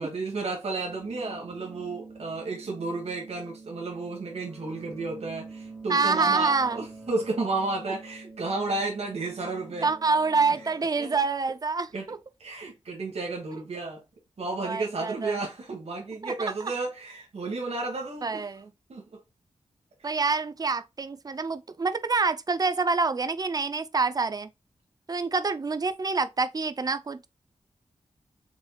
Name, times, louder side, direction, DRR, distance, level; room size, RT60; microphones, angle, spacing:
voice 1, 0.0-9.9 11.0-11.1 11.9-12.1 12.4-14.0 14.4-18.4 18.9-19.2 20.0-20.1, right 3 dB, 60° right, 1.4 m, -32 dB
sound 1, 0.9-10.9, right 3 dB, 5° right, 1.3 m, -46 dB
voice 2, 5.9-6.8 9.8-12.2 14.6-15.4 16.2-16.3 16.6-16.7 18.2-18.7 20.0-24.5 25.1-27.3, right 4 dB, 30° right, 0.5 m, -27 dB
5.3 x 3.4 x 2.3 m
wide cardioid pair, 105°, 12 cm